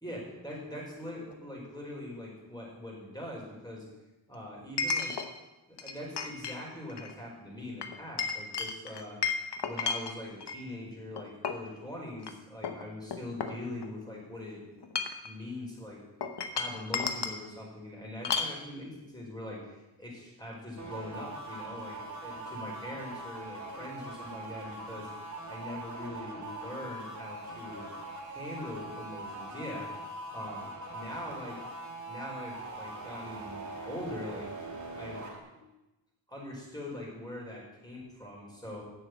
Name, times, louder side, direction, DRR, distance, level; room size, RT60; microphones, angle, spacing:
voice 1, 0.0-3.8 4.3-5.1 5.7-9.2 9.6-14.6 15.2-16.0 16.5-25.1 25.5-27.8 28.3-29.9 30.3-31.6 32.1-34.5 34.9-35.2 35.5-35.6 36.3-38.8, left 1 dB, 10° left, -3 dB, 4.5 m, -42 dB
Chink clink, 1.3-1.4 4.8-5.3 5.8-6.6 6.9-7.1 7.8-10.6 11.2-11.7 12.2-12.3 12.6-14.1 14.8-15.3 16.2-17.4 18.2-18.6, left 5 dB, 60° left, 1.1 m, -33 dB
sound 1, 20.8-35.4, right 2 dB, 40° right, 2.4 m, -42 dB
7.9 x 7.3 x 8.0 m, 1.0 s
cardioid pair, 65°, 47 cm